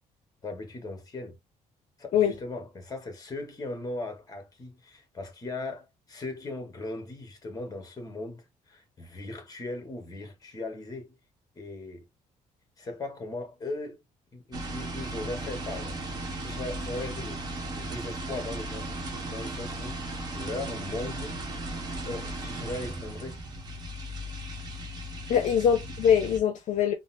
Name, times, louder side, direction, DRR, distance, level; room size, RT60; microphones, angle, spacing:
voice 1, 0.4-1.4 2.0-11.2 11.5-12.1 12.8-14.0 14.3-16.0 16.4-17.4 17.7-21.4 22.0-23.4 25.3-25.5, left 2 dB, 25° left, 1.2 m, -38 dB
sound 1, 14.5-26.4, right 1 dB, 30° right, 1.0 m, -36 dB
voice 2, 25.3-26.9, left 8 dB, 60° left, 0.6 m, -23 dB
3.9 x 2.0 x 2.5 m
cardioid pair, 115°, 14 cm